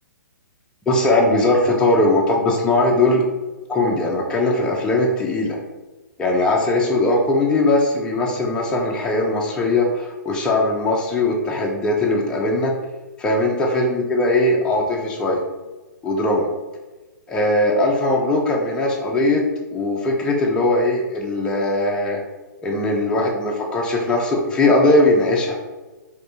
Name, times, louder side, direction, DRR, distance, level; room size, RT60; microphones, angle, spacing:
voice 1, 0.9-3.2 3.7-5.6 6.2-12.7 13.2-15.4 16.0-16.5 17.3-19.4 19.7-22.2 22.6-25.6, left 2 dB, 10° left, -2 dB, 0.4 m, -19 dB
3.3 x 2.6 x 2.7 m, 1.2 s
hypercardioid pair, 135°, 10 cm